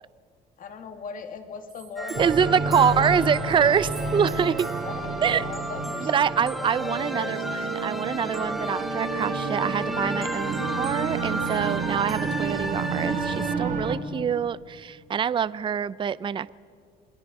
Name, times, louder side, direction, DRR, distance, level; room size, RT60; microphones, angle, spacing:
voice 1, 0.6-3.0 4.8-7.7, left 5 dB, 55° left, 6 dB, 2.5 m, -40 dB
sound 1, 2.0-13.6, equal, ahead, 2.3 m, -34 dB
sound 2, 2.1-14.0, right 4 dB, 50° right, 2.8 m, -31 dB
voice 2, 2.2-4.7 5.2-5.5 6.0-16.5, right 7 dB, 30° right, 18 dB, 0.5 m, -25 dB
28.0 x 21.5 x 5.4 m, 2.2 s
cardioid pair, 110°, 17 cm